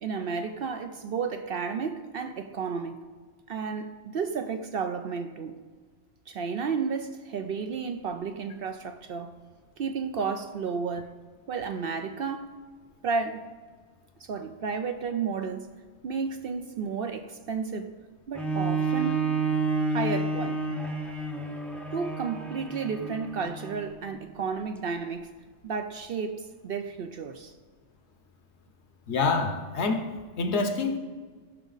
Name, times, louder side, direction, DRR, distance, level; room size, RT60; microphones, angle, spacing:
voice 1, 0.0-3.0 3.5-5.6 6.3-9.3 9.8-11.2 11.5-12.6 13.0-13.4 14.2-15.7 16.0-18.0 18.3-19.3 19.9-20.8 21.9-25.3 25.6-27.5, right 5 dB, 60° right, 0.7 m, -32 dB
Bowed string instrument, 18.4-24.0 24.6-24.7, right 3 dB, ahead, 0.5 m, -30 dB
voice 2, 29.1-30.1 30.4-31.0, left 4 dB, 65° left, 1.1 m, -26 dB
14.5 x 6.1 x 4.0 m
omnidirectional pair, 1.3 m